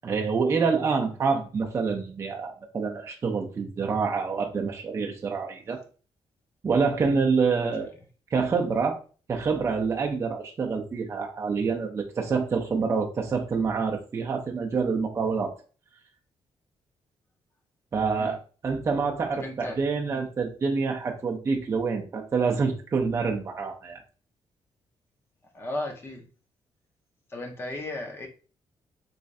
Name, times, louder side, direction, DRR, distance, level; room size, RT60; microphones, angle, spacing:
voice 1, 0.0-5.8 6.6-7.9 8.3-9.0 9.3-15.5 17.9-18.4 18.6-24.0, right 5 dB, 25° right, 1 dB, 0.5 m, -27 dB
voice 2, 19.3-19.8 20.1-20.2 25.5-26.3 27.3-28.3, left 2 dB, 25° left, 2 dB, 0.7 m, -35 dB
3.7 x 3.1 x 2.6 m, 0.37 s
wide cardioid pair, 170°, 10 cm